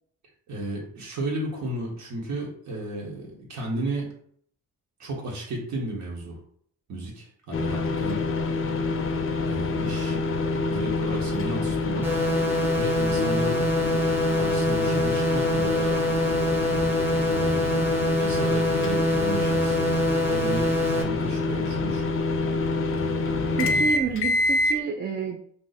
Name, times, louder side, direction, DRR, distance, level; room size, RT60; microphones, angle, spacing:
voice 1, 0.5-4.1 5.0-6.4 6.9-8.3 9.5-10.2 10.7-12.1 12.7-13.6 14.3-16.0 17.3-22.2 22.9-23.8, right 1 dB, 70° right, -2 dB, 1.1 m, -34 dB
sound 1, 7.5-24.8, left 3 dB, 45° left, 0.5 m, -26 dB
sound 2, 12.0-21.0, equal, 5° right, 0.7 m, -26 dB
voice 2, 23.6-25.4, right 6 dB, 35° right, 3 dB, 0.4 m, -29 dB
2.6 x 2.3 x 3.9 m, 0.62 s
cardioid pair, 90°, 30 cm